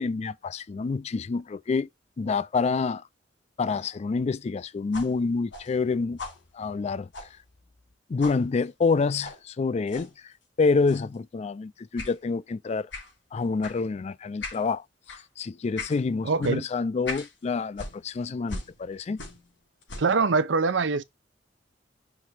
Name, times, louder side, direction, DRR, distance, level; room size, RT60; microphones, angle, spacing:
voice 1, 0.0-1.9 2.2-3.0 3.6-6.2 6.5-7.1 8.1-10.1 10.6-12.9 13.3-14.8 15.1-19.2, left 4 dB, 35° left, 0.3 m, -27 dB
sound 1, 4.9-7.9 8.2-8.4 9.2-9.4 9.9-10.1 10.9-11.1 12.0-12.2 12.9-13.1 13.6-13.8 14.4-14.6 15.0-15.2 15.8-16.0 16.4-16.6 17.0-17.3 17.7-19.5 19.8-20.2, left 3 dB, 90° left, 3.3 m, -40 dB
voice 2, 16.2-16.6 20.0-21.0, right 4 dB, 90° right, 0.6 m, -23 dB
6.0 x 3.5 x 4.6 m
head